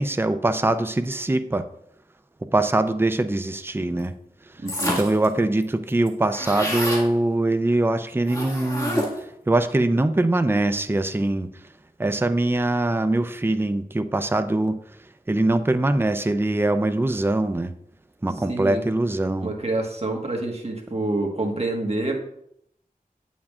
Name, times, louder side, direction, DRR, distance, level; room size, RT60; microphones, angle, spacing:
voice 1, 0.0-1.6 2.5-4.1 4.9-9.1 9.5-11.5 12.0-14.8 15.3-17.7 18.2-19.5, right 2 dB, 15° right, 10 dB, 0.4 m, -22 dB
voice 2, 4.6-5.0 18.5-18.8 19.4-22.1, right 2 dB, 40° right, 1 dB, 1.4 m, -27 dB
sound 1, 4.7-5.3 5.6-5.7 5.9-7.1 8.3-9.3, left 1 dB, 20° left, 1.8 m, -28 dB
8.4 x 7.2 x 2.4 m, 0.74 s
wide cardioid pair, 55°, 15 cm